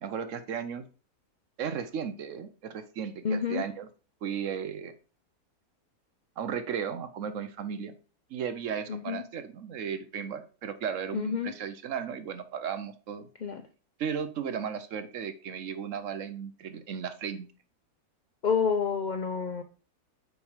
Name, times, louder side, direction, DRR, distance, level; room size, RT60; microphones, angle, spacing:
voice 1, 0.0-0.9 1.6-3.9 4.2-4.9 6.4-8.0 8.3-13.3 14.0-17.5, right 7 dB, 60° right, 10 dB, 1.0 m, -35 dB
voice 2, 3.2-3.6 8.9-9.2 11.1-11.5 13.4-13.6 18.4-19.6, left 6 dB, 85° left, 7 dB, 0.4 m, -28 dB
6.3 x 4.8 x 4.9 m, 0.37 s
omnidirectional pair, 1.7 m